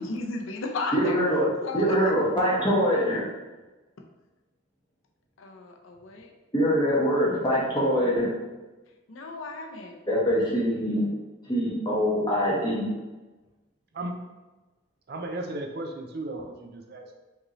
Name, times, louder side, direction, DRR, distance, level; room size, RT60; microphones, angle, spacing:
voice 1, 0.0-1.2 1.6-2.0 5.4-6.3 9.1-10.0, left 3 dB, 80° left, 2 dB, 0.6 m, -34 dB
voice 2, 0.9-1.5 1.7-3.3 6.5-8.3 10.1-11.1 11.5-12.9, equal, 20° left, -6 dB, 1.2 m, -24 dB
voice 3, 15.1-17.1, right 2 dB, 50° right, 3 dB, 0.5 m, -35 dB
5.1 x 2.9 x 3.0 m, 1.2 s
head